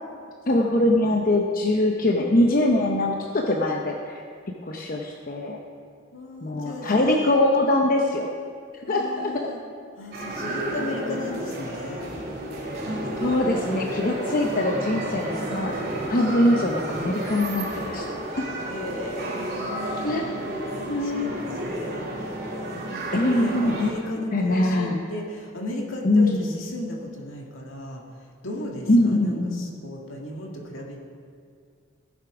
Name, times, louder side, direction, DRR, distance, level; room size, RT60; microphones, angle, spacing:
voice 1, 0.5-4.2 4.6-5.6 6.4-8.3 8.9-9.5 13.2-18.0 20.0-20.3 20.9-21.4 23.1-23.9 24.3-25.0 26.0-26.5 28.9-29.7, left 1 dB, 45° left, 1 dB, 0.8 m, -23 dB
voice 2, 6.1-7.4 8.9-9.6 10.0-12.1 18.7-22.1 22.7-28.0 28.4-31.1, left 1 dB, 70° left, -1 dB, 1.9 m, -35 dB
sound 1, 10.1-23.9, right 1 dB, 50° right, 2.7 m, -31 dB
16.0 x 7.4 x 4.9 m, 2.2 s
head